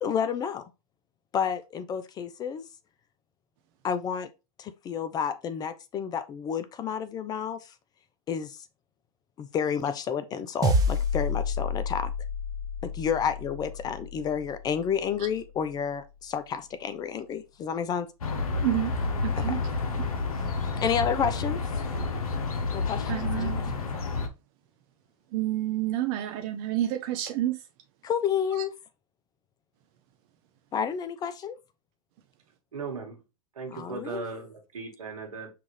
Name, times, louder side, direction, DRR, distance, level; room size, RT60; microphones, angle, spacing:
voice 1, 0.0-0.7 1.3-2.6 3.8-4.3 4.6-7.7 8.3-8.7 9.4-12.1 12.8-18.1 19.3-19.6 20.8-21.8 22.7-23.8 28.0-28.7 30.7-31.6 33.7-34.3, left 7 dB, 20° left, 0.4 m, -30 dB
sound 1, 10.6-15.2, left 2 dB, 20° right, 0.9 m, -29 dB
sound 2, 18.2-24.3, left 4 dB, 80° left, 0.8 m, -30 dB
voice 2, 19.2-19.6 23.1-23.6 25.3-27.5, right 13 dB, 45° right, 0.5 m, -29 dB
voice 3, 32.7-33.2 33.5-35.5, right 4 dB, 80° right, 1.6 m, -37 dB
5.7 x 2.4 x 3.2 m
hypercardioid pair, 105°, 18 cm